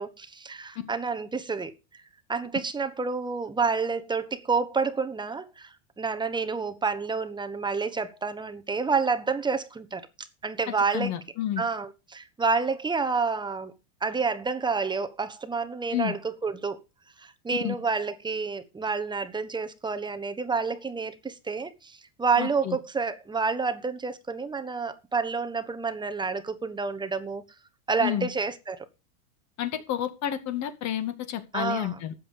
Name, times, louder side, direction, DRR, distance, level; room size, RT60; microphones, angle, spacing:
voice 1, 0.0-1.7 2.3-5.7 6.0-10.1 10.4-11.1 11.6-13.7 14.0-16.8 17.2-27.4 27.9-28.9 31.5-32.0, right 4 dB, 10° right, 1.2 m, -29 dB
voice 2, 10.9-11.6 15.9-16.1 17.6-17.7 22.4-22.8 28.0-28.3 29.6-32.1, left 11 dB, 40° left, 2.2 m, -30 dB
13.0 x 8.6 x 5.4 m
supercardioid pair, 135°, 43 cm